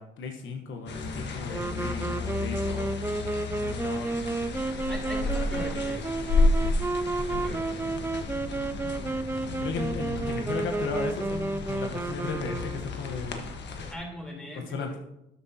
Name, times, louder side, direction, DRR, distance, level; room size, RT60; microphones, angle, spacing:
voice 1, 0.0-2.9 3.5-4.4 5.0-5.3 5.5-5.9 9.6-13.5 14.5-15.0, left 4 dB, 75° left, 4 dB, 1.1 m, -36 dB
sound 1, 0.9-13.9, left 3 dB, 60° left, 1.4 m, -32 dB
Wind instrument woodwind instrument, 1.5-13.2, right 3 dB, 10° right, 0.4 m, -32 dB
voice 2, 4.9-6.2 7.3-7.9 13.9-15.0, equal, 5° left, -1 dB, 3.3 m, -41 dB
12.0 x 8.4 x 2.8 m, 0.85 s
cardioid pair, 90°, 20 cm